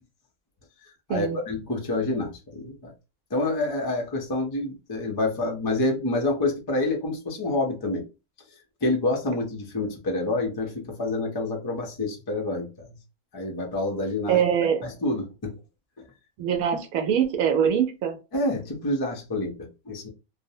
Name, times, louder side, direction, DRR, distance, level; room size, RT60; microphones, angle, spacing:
voice 1, 1.1-2.9 3.3-8.1 8.8-13.0 13.3-14.4 14.8-15.6 16.0-16.1 18.3-20.1, left 2 dB, 40° left, 0.3 m, -28 dB
voice 2, 14.3-14.9 16.4-18.2, right 8 dB, 85° right, 1.0 m, -23 dB
2.6 x 2.0 x 2.7 m
omnidirectional pair, 1.4 m